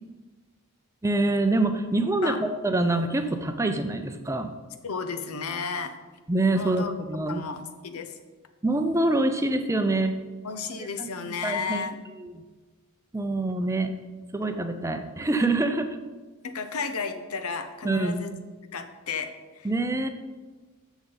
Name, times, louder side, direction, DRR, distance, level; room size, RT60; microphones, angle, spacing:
voice 1, 1.0-4.5 6.3-7.4 8.6-10.2 11.0-11.1 11.4-11.8 12.2-12.4 13.1-13.9 14.3-16.0 17.8-18.2 19.6-20.1, right 2 dB, 15° right, 7 dB, 0.5 m, -25 dB
voice 2, 4.8-5.9 6.6-6.9 7.3-8.2 10.4-12.0 16.4-18.3 18.7-19.7, left 5 dB, 80° left, 8 dB, 0.8 m, -33 dB
10.0 x 7.2 x 4.0 m, 1.3 s
head